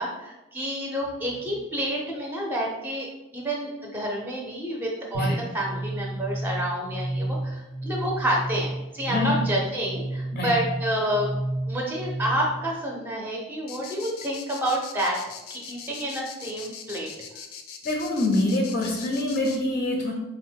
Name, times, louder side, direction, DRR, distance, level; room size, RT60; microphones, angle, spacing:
voice 1, 0.0-3.1 3.3-11.3 11.7-15.2 15.5-17.1, equal, 10° right, -2 dB, 0.5 m, -29 dB
sound 1, 5.1-12.7, right 1 dB, 85° right, 0.7 m, -31 dB
sound 2, 13.7-19.6, left 7 dB, 90° left, 0.5 m, -41 dB
voice 2, 17.8-20.1, left 2 dB, 35° left, 0 dB, 0.5 m, -25 dB
3.8 x 2.1 x 4.4 m, 1.0 s
head